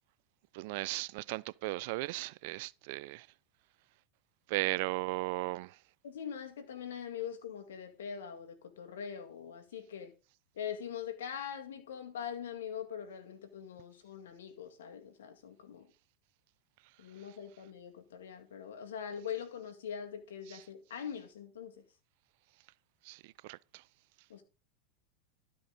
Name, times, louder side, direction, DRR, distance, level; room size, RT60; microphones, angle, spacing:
voice 1, 0.5-3.3 4.5-5.8 20.5-20.6 23.0-23.8, right 21 dB, 65° right, 0.4 m, -36 dB
voice 2, 6.0-10.1 10.6-15.9 17.0-21.8 24.3-24.4, left 8 dB, 85° left, 2.0 m, -42 dB
13.0 x 5.3 x 5.1 m
hypercardioid pair, 105°, 0 cm